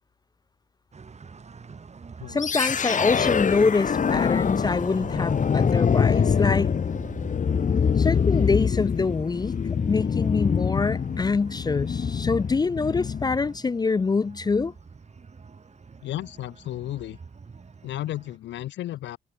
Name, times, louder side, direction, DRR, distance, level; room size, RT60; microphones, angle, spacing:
sound 1, 0.9-18.4, right 5 dB, 35° right, 4.5 m, -45 dB
voice 1, 2.3-6.7 8.0-9.6 9.9-14.7, left 4 dB, 20° left, 0.4 m, -25 dB
sound 2, 2.4-13.5, left 6 dB, 40° left, 1.6 m, -24 dB
voice 2, 16.0-17.2 17.8-19.2, left 14 dB, 75° left, 0.8 m, -33 dB
cardioid pair, 80°, 19 cm